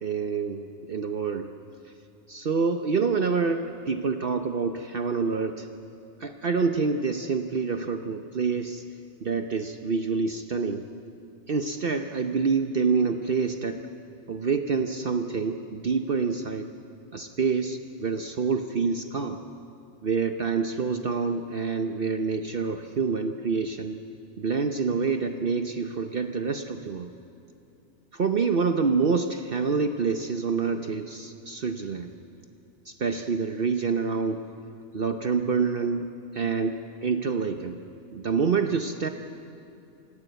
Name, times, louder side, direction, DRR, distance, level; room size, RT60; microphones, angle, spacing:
voice 1, 0.0-1.5 2.3-5.7 6.2-8.8 9.2-10.8 11.5-13.8 14.3-16.7 17.1-19.4 20.0-24.0 24.4-27.1 28.1-32.1 32.9-34.4 34.9-36.1 36.3-37.8 38.1-39.1, right 5 dB, 50° right, 6 dB, 1.0 m, -27 dB
28.0 x 17.0 x 8.1 m, 2.8 s
omnidirectional pair, 1.2 m